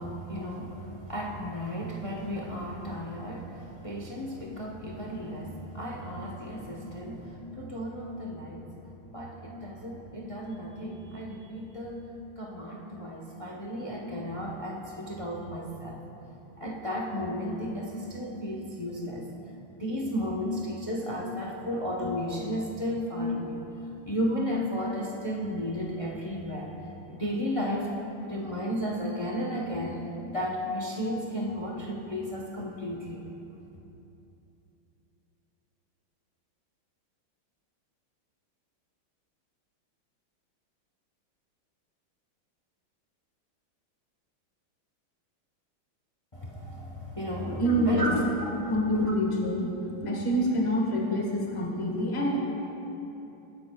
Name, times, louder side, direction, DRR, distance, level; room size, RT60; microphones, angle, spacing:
voice 1, 0.0-8.8 9.1-12.1 12.4-16.0 16.6-19.3 19.8-23.6 24.1-26.7 27.1-27.9 28.2-30.0 30.3-33.2 46.3-48.3 48.5-48.7 49.0-49.1, equal, 40° left, -2 dB, 0.4 m, -33 dB
voice 2, 47.6-48.0 48.7-49.7 50.0-52.4, equal, 15° left, -2 dB, 1.3 m, -26 dB
22.0 x 10.5 x 2.3 m, 2.9 s
omnidirectional pair, 2.3 m